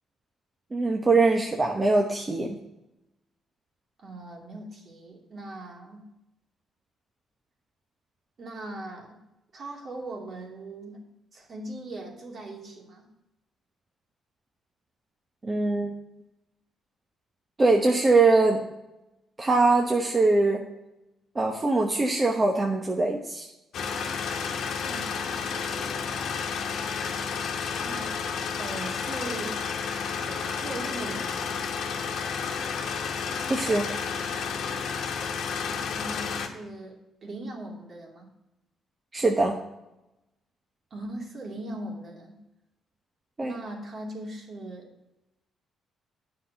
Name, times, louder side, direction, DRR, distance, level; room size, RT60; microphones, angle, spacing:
voice 1, 0.7-2.6 15.4-15.9 17.6-18.6 19.4-20.6 21.3-23.5 33.5-33.9 39.1-39.6 43.4-43.6, right 3 dB, 25° right, 1 dB, 1.1 m, -22 dB
voice 2, 4.0-6.0 8.4-9.2 9.5-11.0 11.3-13.1 24.8-26.9 27.8-28.1 28.6-29.6 30.2-31.5 35.7-38.3 40.9-42.4 43.4-44.9, right 2 dB, 50° right, 0 dB, 2.6 m, -40 dB
sound 1, 23.7-36.5, left 6 dB, 70° left, 1.3 m, -31 dB
9.2 x 5.9 x 6.9 m, 0.93 s
cardioid pair, 90°, 0 cm